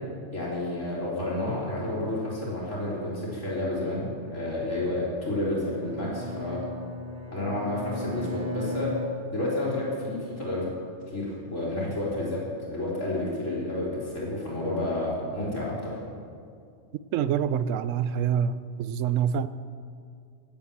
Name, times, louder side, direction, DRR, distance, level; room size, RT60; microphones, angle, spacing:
voice 1, 0.3-6.6 7.3-8.9 9.3-10.7 11.1-12.4 12.7-16.0, left 1 dB, 75° left, -6 dB, 4.4 m, -30 dB
Bowed string instrument, 5.6-9.9, left 1 dB, 25° right, 1.0 m, -37 dB
voice 2, 17.1-19.5, right 8 dB, 85° right, 14 dB, 1.0 m, -26 dB
16.5 x 8.9 x 7.3 m, 2.3 s
omnidirectional pair, 1.3 m